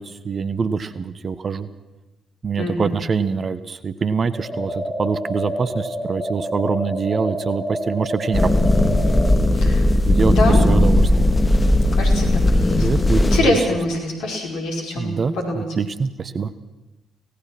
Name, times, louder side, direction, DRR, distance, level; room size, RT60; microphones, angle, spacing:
voice 1, 0.0-1.7 2.4-8.6 10.1-10.4 10.7-11.3 12.8-13.6 15.0-16.5, right 5 dB, 40° right, 13 dB, 1.2 m, -24 dB
voice 2, 2.6-2.9 9.5-9.8 10.3-10.6 11.9-12.9 13.2-15.7, left 2 dB, 65° left, 1 dB, 4.6 m, -24 dB
sound 1, 4.3-9.4, equal, 15° right, 6.4 m, -28 dB
sound 2, 8.3-13.4, left 1 dB, 25° left, 2.7 m, -17 dB
25.5 x 18.0 x 6.1 m, 1.0 s
figure-of-eight pair, 40°, 0 cm